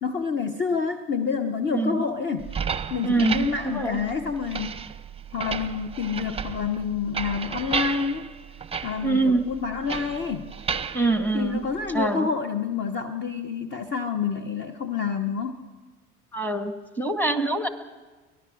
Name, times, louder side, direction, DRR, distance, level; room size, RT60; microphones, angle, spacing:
voice 1, 0.0-2.5 2.9-4.8 5.3-8.3 8.8-10.5 11.3-15.6, left 6 dB, 30° left, 9 dB, 1.2 m, -28 dB
voice 2, 1.7-2.0 3.0-4.0 9.0-9.5 10.9-11.6 11.9-12.3 16.3-17.7, right 3 dB, 5° left, 9 dB, 2.0 m, -24 dB
sound 1, 2.4-12.1, right 6 dB, 15° right, 0.8 m, -34 dB
23.5 x 19.0 x 6.3 m, 1.3 s
hypercardioid pair, 65°, 37 cm